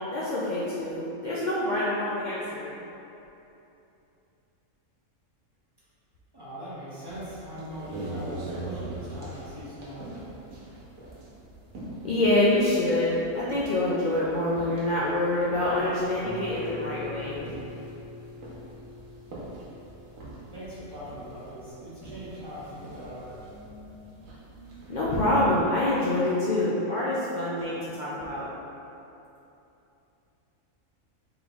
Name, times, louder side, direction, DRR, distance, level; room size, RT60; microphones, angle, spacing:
voice 1, 0.0-2.7 12.0-17.4 24.9-28.5, left 1 dB, 80° left, -8 dB, 0.4 m, -26 dB
voice 2, 6.3-10.2 20.5-23.5, equal, 25° right, -10 dB, 0.7 m, -41 dB
sound 1, 7.1-25.3, right 2 dB, 80° right, 1.2 m, -43 dB
Guitar, 16.2-21.6, left 2 dB, 65° left, 1.2 m, -44 dB
3.7 x 3.5 x 2.9 m, 2.9 s
omnidirectional pair, 1.4 m